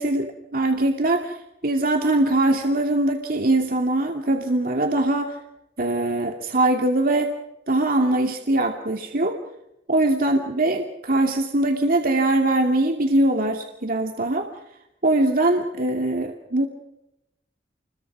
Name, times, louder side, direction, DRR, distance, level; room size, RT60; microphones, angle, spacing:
voice 1, 0.0-1.4 1.6-5.4 5.8-7.3 7.7-9.4 9.9-14.5 15.0-16.7, right 2 dB, 55° right, 3 dB, 2.5 m, -22 dB
30.0 x 22.5 x 6.2 m, 0.87 s
head